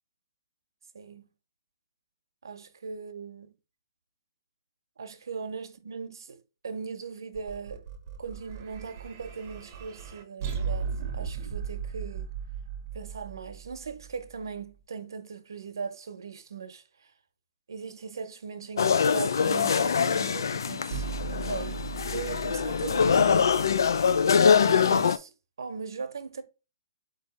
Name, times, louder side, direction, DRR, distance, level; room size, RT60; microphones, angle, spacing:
voice 1, 0.9-1.3 2.4-3.5 5.0-7.9 8.2-12.3 12.9-16.8 17.7-21.0 21.3-23.6 24.5-25.3 25.6-26.4, right 5 dB, 90° right, 0.7 m, -39 dB
sound 1, 7.3-14.6 20.9-25.0, right 7 dB, 30° right, 0.7 m, -38 dB
sound 2, 18.8-25.2, left 6 dB, 85° left, 0.4 m, -24 dB
4.6 x 2.8 x 4.1 m
hypercardioid pair, 165°, 2 cm